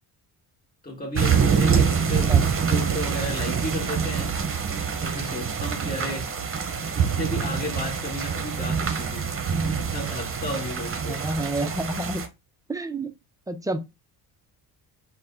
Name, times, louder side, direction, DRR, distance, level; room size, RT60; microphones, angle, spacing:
voice 1, 0.8-2.4 2.6-4.3 5.0-6.3 6.9-9.3 9.6-11.2, left 1 dB, 20° left, 1.8 m, -33 dB
sound 1, 1.1-12.3, right 6 dB, 30° right, 0.8 m, -25 dB
voice 2, 11.1-12.2 12.7-13.1 13.5-13.8, right 2 dB, 10° right, 0.4 m, -29 dB
4.6 x 2.1 x 3.8 m
cardioid pair, 95°, 41 cm